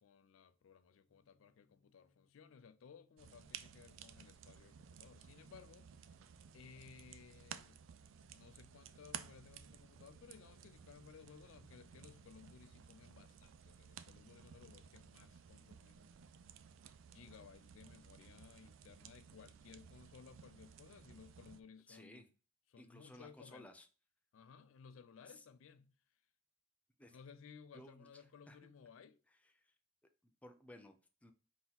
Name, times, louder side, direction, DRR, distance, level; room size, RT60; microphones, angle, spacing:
voice 1, 0.0-6.0 6.5-7.8 8.3-16.2 17.1-22.3 22.7-23.7 24.3-25.9 27.1-29.2, left 6 dB, 75° left, 0.4 m, -59 dB
sound 1, 1.1-12.2, left 3 dB, 45° left, 0.8 m, -77 dB
sound 2, 3.2-21.6, right 8 dB, 70° right, 0.4 m, -56 dB
voice 2, 21.9-22.2 22.8-23.9 25.3-25.4 27.0-27.2 27.7-28.1 28.5-28.6 29.6-29.7 30.2-31.3, left 1 dB, 5° left, 0.4 m, -57 dB
4.0 x 2.9 x 4.0 m
head